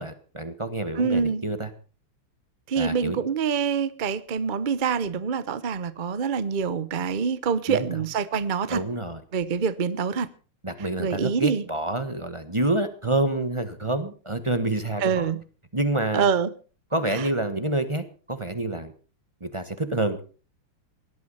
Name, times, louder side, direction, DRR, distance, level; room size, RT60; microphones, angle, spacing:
voice 1, 0.0-1.7 2.8-3.2 7.7-7.9 8.7-9.2 10.6-15.3 15.7-16.3 16.9-18.9 19.4-20.2, right 2 dB, 20° right, 1.0 m, -27 dB
voice 2, 0.9-1.4 2.7-8.8 9.3-10.3 11.0-11.6 15.0-15.4 16.1-16.5 17.1-17.3, right 6 dB, 50° right, 0.5 m, -25 dB
18.0 x 12.0 x 5.6 m
omnidirectional pair, 2.4 m